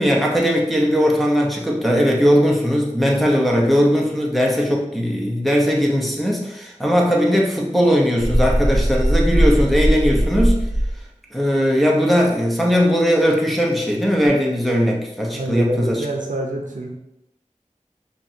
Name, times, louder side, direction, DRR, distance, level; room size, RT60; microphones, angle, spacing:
voice 1, 0.0-10.6 11.3-16.0, equal, ahead, -2 dB, 0.9 m, -19 dB
sound 1, 8.2-11.0, equal, 35° right, 1.1 m, -19 dB
voice 2, 15.3-16.9, right 1 dB, 85° right, 0 dB, 0.7 m, -26 dB
5.3 x 2.9 x 2.8 m, 0.84 s
wide cardioid pair, 40°, 13 cm